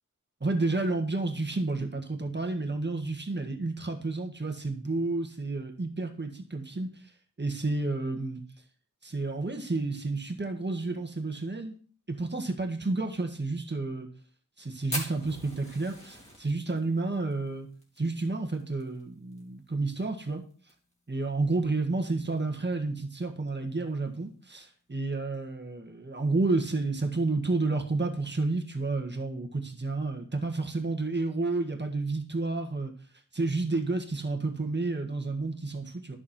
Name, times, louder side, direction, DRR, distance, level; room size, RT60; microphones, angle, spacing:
voice 1, 0.4-6.9 7.4-8.4 9.0-11.7 12.1-14.1 14.6-17.7 18.0-20.4 21.1-32.9 33.3-36.2, right 3 dB, 35° right, 4 dB, 1.6 m, -30 dB
Fire, 14.9-19.4 19.7-19.8 20.0-20.1 20.5-20.9 21.4-21.5 22.6-22.7, equal, 20° left, 3.1 m, -40 dB
11.0 x 6.4 x 4.3 m, 0.43 s
wide cardioid pair, 75°, 33 cm